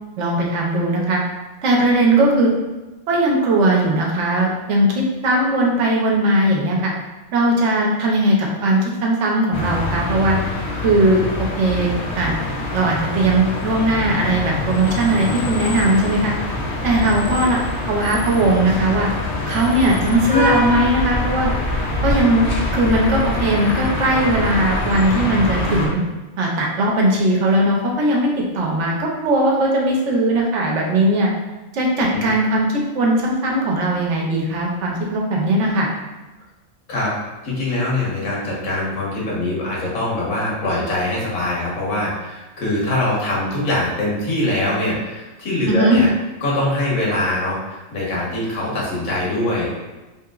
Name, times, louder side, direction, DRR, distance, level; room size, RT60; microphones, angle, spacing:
voice 1, 0.2-1.2 1.6-2.5 3.1-6.9 7.3-10.4 10.8-11.2 11.6-12.3 12.7-16.3 16.8-19.1 19.5-21.5 22.0-22.5 22.7-26.0 26.4-31.3 31.7-32.7 32.9-35.9 45.7-46.0, right 1 dB, 70° right, -2 dB, 0.9 m, -18 dB
sound 1, 9.5-25.9, left 2 dB, 65° left, 0.8 m, -24 dB
voice 2, 37.4-46.1 46.4-49.7, left 1 dB, 90° left, -5 dB, 1.4 m, -23 dB
3.0 x 2.8 x 2.3 m, 1.1 s
omnidirectional pair, 1.4 m